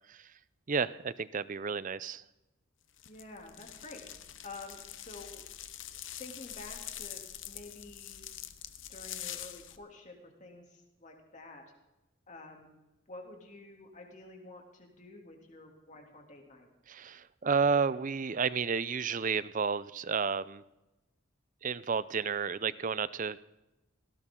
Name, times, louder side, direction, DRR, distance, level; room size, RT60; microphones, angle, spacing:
voice 1, 0.7-2.2 16.9-20.6 21.6-23.4, right 5 dB, 40° right, 17 dB, 0.5 m, -31 dB
sound 1, 3.0-9.8, left 11 dB, 65° left, 1.0 m, -45 dB
voice 2, 3.0-4.0 4.4-5.4 6.2-8.3 8.9-11.6 12.3-12.7 13.1-16.7, left 2 dB, 35° left, 1 dB, 2.9 m, -49 dB
18.5 x 17.0 x 3.8 m, 0.98 s
head